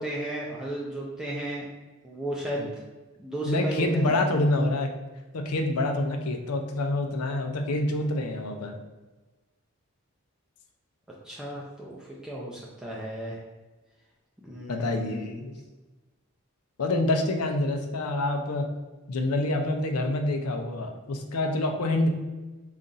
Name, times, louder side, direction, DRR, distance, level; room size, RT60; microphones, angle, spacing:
voice 1, 0.0-1.7 2.0-2.6 3.2-4.2 11.2-13.4 14.4-15.3, right 1 dB, 5° right, -5 dB, 0.4 m, -34 dB
voice 2, 3.5-4.9 5.3-8.8 14.7-15.6 16.8-18.7 19.1-22.1, left 2 dB, 85° left, 4 dB, 0.6 m, -27 dB
4.0 x 2.5 x 3.9 m, 1.2 s
head